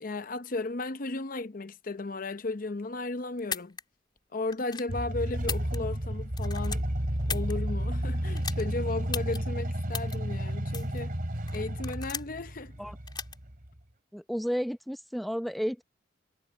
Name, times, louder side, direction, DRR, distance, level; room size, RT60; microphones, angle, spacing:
voice 1, 0.0-3.8 4.3-6.9 7.3-11.1 11.5-12.7, left 2 dB, 45° left, 0.7 m, -35 dB
sound 1, 3.4-3.8 4.5-4.9 5.4-6.1 6.3-7.5 8.3-8.6 9.1-9.4 9.9-10.2 10.7-11.0 11.5-12.4 13.1-13.3, left 6 dB, 25° left, 3.7 m, -36 dB
sound 2, 4.9-13.8, equal, 50° right, 2.7 m, -32 dB
voice 2, 14.1-15.8, equal, ahead, 0.7 m, -32 dB
head